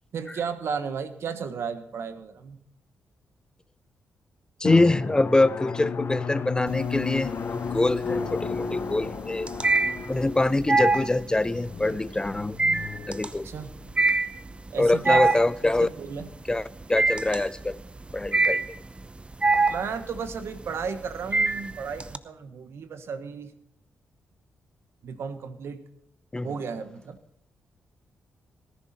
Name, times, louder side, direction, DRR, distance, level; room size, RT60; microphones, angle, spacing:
voice 1, 0.1-2.6 13.4-13.7 14.7-15.2 15.6-16.3 19.7-23.5 25.0-25.8 26.4-27.2, right 6 dB, 70° right, 1.4 m, -34 dB
Drum, 4.6-13.9, left 6 dB, 55° left, 1.0 m, -33 dB
voice 2, 4.6-9.5 10.1-12.6 13.1-13.5 14.8-15.9 16.5-17.8 18.1-18.6 26.3-26.5, left 2 dB, 15° left, 0.4 m, -24 dB
sound 1, 6.7-7.3 7.7-22.2, right 3 dB, 25° right, 0.7 m, -25 dB
18.5 x 10.5 x 4.3 m
cardioid pair, 65°, 4 cm